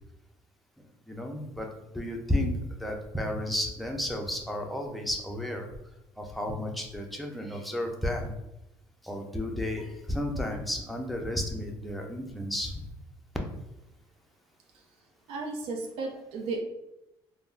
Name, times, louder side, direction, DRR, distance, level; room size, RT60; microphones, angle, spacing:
voice 1, 1.1-2.5 2.8-5.7 6.2-8.3 9.0-12.8, left 1 dB, ahead, 1 dB, 0.5 m, -32 dB
voice 2, 15.3-16.6, right 3 dB, 75° right, 1 dB, 0.5 m, -34 dB
3.4 x 2.1 x 2.4 m, 0.88 s
cardioid pair, 95°, 10 cm